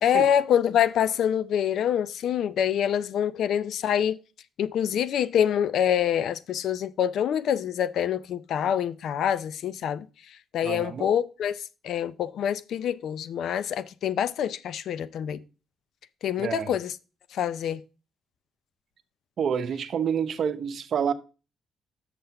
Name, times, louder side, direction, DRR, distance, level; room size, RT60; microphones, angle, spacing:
voice 1, 0.0-4.2 4.6-10.1 10.5-11.5 11.8-15.4 16.2-16.9 17.3-17.8, left 9 dB, 70° left, 0.5 m, -26 dB
voice 2, 10.6-11.1 16.4-16.7 19.4-21.1, right 7 dB, 60° right, 0.8 m, -28 dB
6.7 x 5.7 x 5.7 m
cardioid pair, 90°, 0 cm